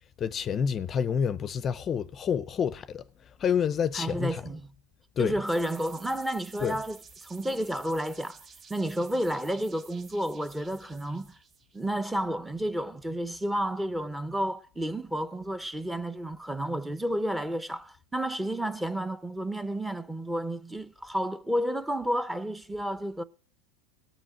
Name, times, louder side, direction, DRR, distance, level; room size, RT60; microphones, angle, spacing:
voice 1, 0.2-3.0 3.4-4.4 5.2-5.4 6.6-6.8, left 7 dB, 30° left, 0.5 m, -28 dB
voice 2, 3.9-4.7 5.2-8.4 8.7-11.3 11.7-23.2, right 1 dB, 5° right, 0.8 m, -31 dB
sound 1, 5.5-12.2, right 5 dB, 35° right, 2.2 m, -52 dB
17.5 x 6.1 x 9.1 m
hypercardioid pair, 110°, 0 cm